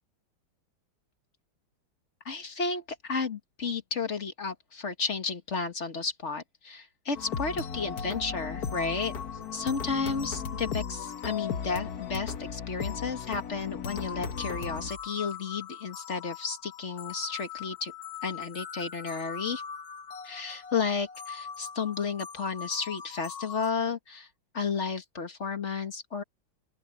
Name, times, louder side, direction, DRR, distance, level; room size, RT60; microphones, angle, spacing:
voice 1, 2.2-9.1 9.5-17.9 18.2-19.6 20.2-24.3 24.5-26.2, left 5 dB, 35° left, 1.6 m, -32 dB
sound 1, 7.1-23.7, left 7 dB, 50° left, 1.5 m, -38 dB
open air
omnidirectional pair, 2.3 m